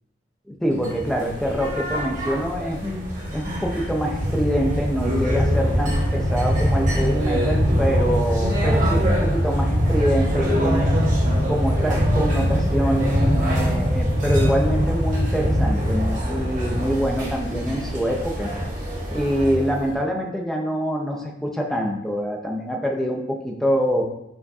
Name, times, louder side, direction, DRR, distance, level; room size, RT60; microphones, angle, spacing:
voice 1, 0.5-3.0 3.3-11.0 11.5-18.5 19.1-24.0, equal, ahead, 0 dB, 0.4 m, -25 dB
sound 1, 0.8-20.0, equal, 45° right, 1.0 m, -22 dB
4.5 x 2.5 x 2.3 m, 0.87 s
head